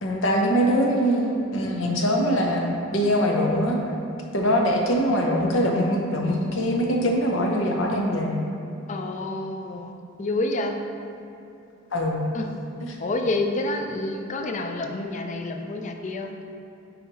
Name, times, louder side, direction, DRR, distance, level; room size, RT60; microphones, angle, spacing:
voice 1, 0.0-3.8 4.3-8.4 11.9-12.3 12.8-13.0, equal, 75° left, 0 dB, 0.8 m, -23 dB
voice 2, 8.9-9.9 10.2-10.8 12.3-12.5 13.0-16.3, left 2 dB, 40° left, 4 dB, 0.4 m, -28 dB
5.7 x 4.2 x 4.1 m, 2.8 s
head